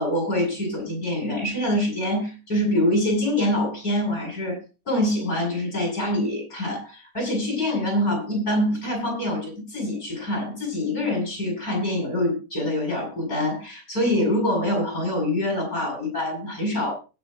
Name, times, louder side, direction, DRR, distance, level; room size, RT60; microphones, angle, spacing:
voice 1, 0.0-4.6 4.9-16.9, left 1 dB, 75° left, 1 dB, 8.4 m, -25 dB
20.5 x 7.3 x 3.9 m, 0.33 s
omnidirectional pair, 1.5 m